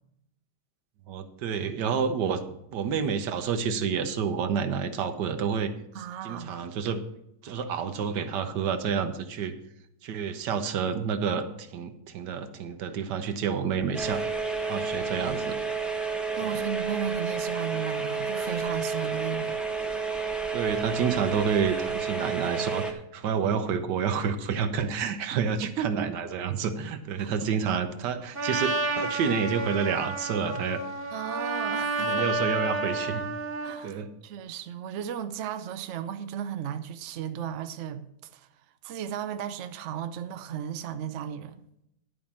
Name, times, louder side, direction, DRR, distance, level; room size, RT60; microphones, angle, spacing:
voice 1, 1.1-2.4 2.7-5.7 6.2-7.0 7.4-9.5 10.0-14.2 14.7-15.6 16.4-16.6 19.8-19.9 20.5-30.8 32.0-33.3 33.8-34.1, right 6 dB, 85° right, 1.5 m, -29 dB
voice 2, 5.9-6.6 16.4-19.6 25.3-26.1 27.2-27.3 31.1-32.3 33.6-38.0 38.3-38.5 38.8-41.7, right 9 dB, 60° right, 0.8 m, -35 dB
sound 1, 13.9-22.9, right 4 dB, ahead, 0.7 m, -30 dB
Trumpet, 28.3-33.8, right 3 dB, 35° right, 1.4 m, -30 dB
11.0 x 5.1 x 7.2 m
omnidirectional pair, 1.8 m